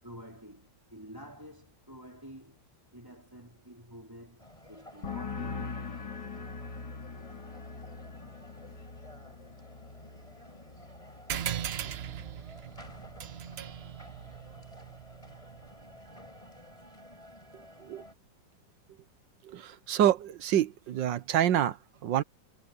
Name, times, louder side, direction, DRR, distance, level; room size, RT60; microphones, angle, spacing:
voice 1, 0.0-5.8, equal, 10° right, 3.8 m, -49 dB
sound 1, 4.4-18.1, left 1 dB, 15° left, 6.6 m, -53 dB
sound 2, 5.0-12.5 12.8-13.3, left 5 dB, 65° left, 3.4 m, -43 dB
sound 3, 11.3-16.2, right 9 dB, 70° right, 0.6 m, -39 dB
voice 2, 19.4-22.2, right 11 dB, 85° right, 1.6 m, -27 dB
omnidirectional pair, 1.9 m